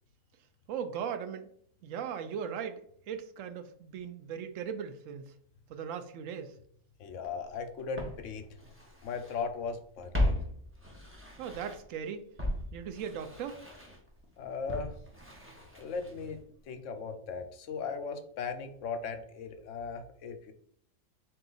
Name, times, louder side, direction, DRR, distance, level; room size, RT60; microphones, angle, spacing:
voice 1, 0.7-1.5 1.8-2.8 3.1-5.3 5.7-6.5 11.4-12.3 12.7-13.6, right 7 dB, 75° right, 8 dB, 0.9 m, -38 dB
voice 2, 7.0-8.5 9.0-10.4 14.4-15.0 15.7-20.5, left 5 dB, 70° left, 7 dB, 0.9 m, -38 dB
Walk footsteps, 7.2-7.3 8.0-9.4 9.7-12.0 12.4-16.4 16.7-16.8, left 1 dB, 15° right, 0.6 m, -36 dB
3.7 x 2.9 x 3.8 m, 0.64 s
omnidirectional pair, 1.4 m